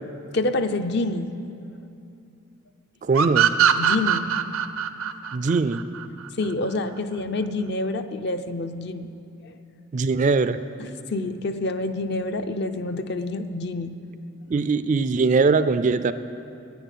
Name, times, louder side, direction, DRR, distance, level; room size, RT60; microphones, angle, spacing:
voice 1, 0.3-1.3 3.8-4.3 6.4-9.1 9.4-9.5 10.8-14.0, left 2 dB, 55° left, 9 dB, 0.6 m, -27 dB
voice 2, 3.0-3.5 5.3-5.8 9.9-10.6 14.5-16.1, right 4 dB, 35° right, 12 dB, 0.3 m, -21 dB
sound 1, 3.1-6.5, right 9 dB, 85° right, 0.6 m, -21 dB
10.5 x 9.9 x 9.2 m, 2.6 s
head